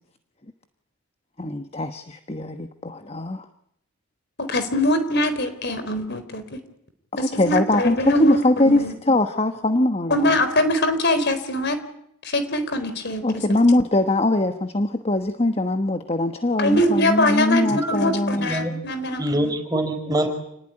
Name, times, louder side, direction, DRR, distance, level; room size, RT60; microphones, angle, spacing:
voice 1, 1.4-3.4 7.1-10.3 13.2-18.5, left 1 dB, 30° left, 8 dB, 1.2 m, -22 dB
voice 2, 4.4-6.6 7.2-8.9 10.1-11.8 12.2-13.6 16.6-19.5, left 1 dB, 50° left, 10 dB, 4.1 m, -23 dB
voice 3, 17.6-18.8 19.1-20.3, right 1 dB, 15° right, 5 dB, 5.3 m, -25 dB
29.0 x 20.0 x 9.9 m, 0.75 s
head